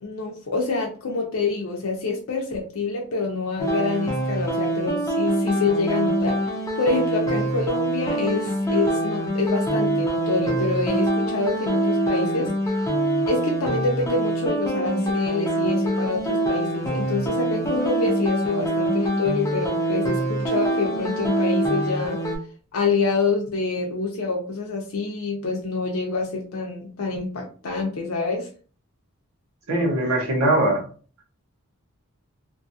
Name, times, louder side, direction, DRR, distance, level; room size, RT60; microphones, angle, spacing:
voice 1, 0.0-12.5 13.3-22.2 22.7-28.5, left 3 dB, 75° left, 0 dB, 0.6 m, -26 dB
sound 1, 3.6-22.4, right 1 dB, 15° left, 0.5 m, -24 dB
voice 2, 29.7-30.9, right 1 dB, 85° right, -1 dB, 1.2 m, -21 dB
2.7 x 2.4 x 2.7 m, 0.40 s
head